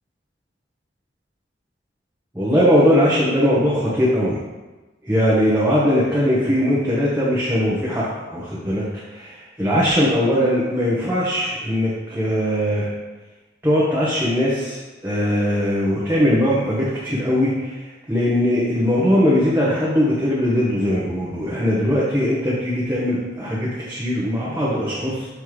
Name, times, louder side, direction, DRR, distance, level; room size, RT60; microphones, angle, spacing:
voice 1, 2.3-4.4 5.0-8.8 9.1-12.9 13.6-25.3, equal, 10° right, -8 dB, 1.1 m, -20 dB
7.5 x 3.3 x 4.8 m, 1.2 s
head